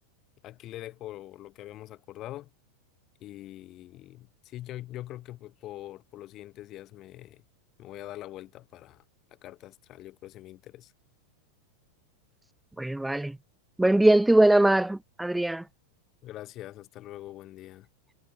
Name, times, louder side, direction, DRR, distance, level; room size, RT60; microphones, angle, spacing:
voice 1, 0.4-2.5 3.2-7.4 7.8-9.0 9.3-10.9 16.2-17.9, left 14 dB, 35° left, 7.8 m, -43 dB
voice 2, 12.8-13.4 13.8-15.6, right 1 dB, 5° right, 0.6 m, -21 dB
figure-of-eight pair, 90°, 0 cm